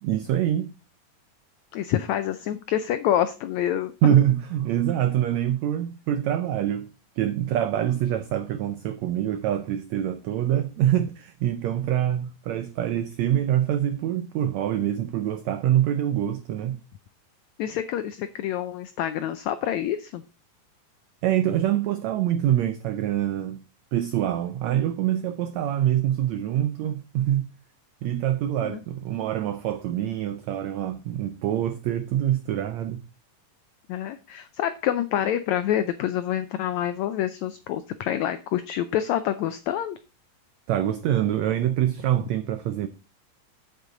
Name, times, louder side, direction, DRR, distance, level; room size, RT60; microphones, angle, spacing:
voice 1, 0.0-0.7 4.0-6.9 7.2-16.8 21.2-23.6 23.9-27.5 28.0-33.0 40.7-42.9, right 11 dB, 90° right, 1.5 m, -25 dB
voice 2, 1.7-4.1 17.6-20.2 28.6-28.8 33.9-40.0, left 11 dB, 85° left, 1.6 m, -27 dB
8.2 x 8.2 x 3.8 m
omnidirectional pair, 4.0 m